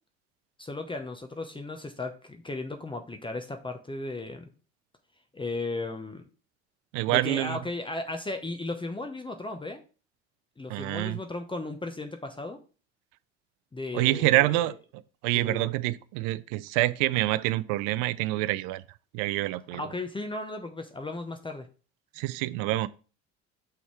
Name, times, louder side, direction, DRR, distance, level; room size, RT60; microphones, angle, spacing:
voice 1, 0.6-4.5 5.3-6.3 7.1-9.8 10.6-12.6 13.7-14.8 15.3-15.6 19.7-21.7, left 2 dB, 15° left, 0.9 m, -35 dB
voice 2, 6.9-7.6 10.7-11.2 13.9-14.7 15.2-18.8 19.1-19.8 22.2-22.9, right 17 dB, 60° right, 0.5 m, -26 dB
6.0 x 3.6 x 4.7 m
hypercardioid pair, 65°, 36 cm